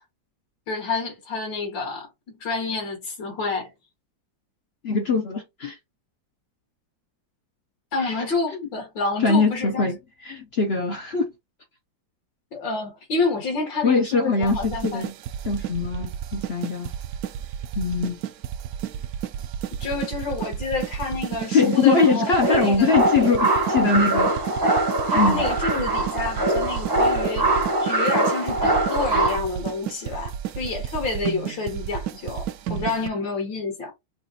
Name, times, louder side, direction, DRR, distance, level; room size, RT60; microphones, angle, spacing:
voice 1, 0.7-2.1 2.4-3.7 7.9-9.9 12.5-15.1 19.8-22.9 25.1-27.5 27.8-33.9, left 3 dB, 75° left, 2.6 m, -28 dB
voice 2, 4.8-5.8 9.2-10.0 10.2-11.3 13.8-15.1 15.5-16.9 17.8-18.2 21.5-24.3 25.1-25.5, left 4 dB, 55° left, 0.7 m, -22 dB
sound 1, 14.4-33.1, right 10 dB, 70° right, 0.9 m, -32 dB
sound 2, 22.4-29.4, right 2 dB, 20° right, 0.6 m, -22 dB
5.9 x 2.5 x 2.8 m
omnidirectional pair, 2.0 m